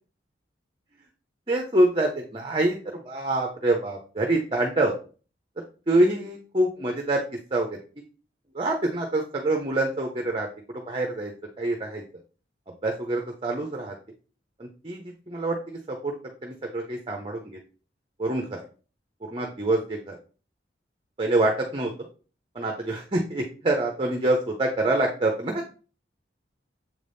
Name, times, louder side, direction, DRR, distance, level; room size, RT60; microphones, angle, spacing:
voice 1, 1.5-2.8 3.1-4.9 5.9-7.2 7.5-7.7 8.5-12.0 12.8-13.9 14.6-15.6 15.9-16.1 16.4-17.6 18.2-18.6 19.2-20.2 21.2-21.9 22.5-25.6, right 2 dB, 30° right, 2 dB, 0.7 m, -26 dB
7.2 x 4.0 x 3.4 m, 0.38 s
head